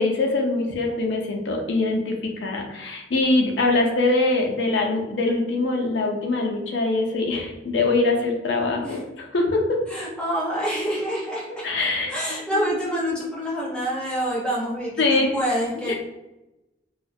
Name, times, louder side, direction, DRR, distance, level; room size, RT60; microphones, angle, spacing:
voice 1, 0.0-9.8 11.6-12.1 12.5-12.6 15.0-15.3 15.9-16.0, left 2 dB, 70° left, 1 dB, 0.4 m, -23 dB
voice 2, 9.9-11.7 12.1-15.9, equal, 5° left, -6 dB, 0.7 m, -27 dB
2.3 x 2.1 x 2.6 m, 0.99 s
head